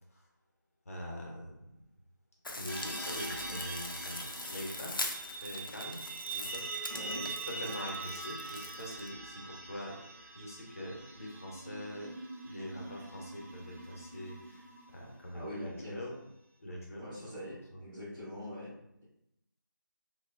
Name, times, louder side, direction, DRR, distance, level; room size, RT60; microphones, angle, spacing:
voice 1, 0.9-1.7 2.5-5.0 5.3-6.0 6.3-10.0 10.3-12.1 12.4-14.7 14.9-16.2 16.6-17.8, equal, 40° left, -1 dB, 0.7 m, -44 dB
sound 1, 2.4-9.1, left 2 dB, 85° left, 0.4 m, -42 dB
sound 2, 2.7-15.2, right 3 dB, 45° right, 0.7 m, -43 dB
voice 2, 6.9-7.3 15.3-16.0 17.0-18.7, equal, 5° right, -16 dB, 0.4 m, -43 dB
2.9 x 2.1 x 2.3 m, 0.81 s
figure-of-eight pair, 165°, 11 cm